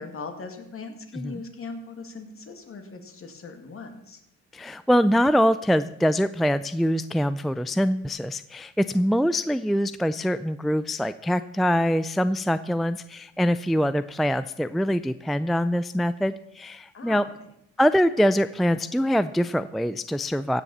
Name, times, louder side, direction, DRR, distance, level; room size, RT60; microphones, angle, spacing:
voice 1, 0.0-4.2 16.9-17.5, left 4 dB, 45° left, 6 dB, 2.3 m, -39 dB
voice 2, 4.5-17.2 17.8-20.6, equal, ahead, 14 dB, 0.4 m, -24 dB
16.0 x 6.9 x 7.3 m, 0.81 s
cardioid pair, 90°, 30 cm